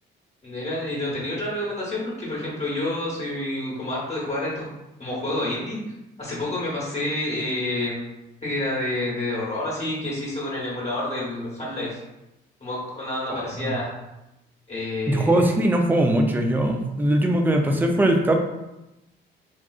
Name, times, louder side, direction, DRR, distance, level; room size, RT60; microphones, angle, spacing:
voice 1, 0.4-4.7 5.0-5.8 6.2-8.0 8.4-12.0 12.6-13.9 14.7-15.5, left 1 dB, 35° left, -6 dB, 1.1 m, -28 dB
voice 2, 13.3-13.7 15.1-18.4, right 1 dB, 10° right, 3 dB, 0.4 m, -21 dB
3.8 x 2.3 x 2.3 m, 0.94 s
cardioid pair, 90°, 20 cm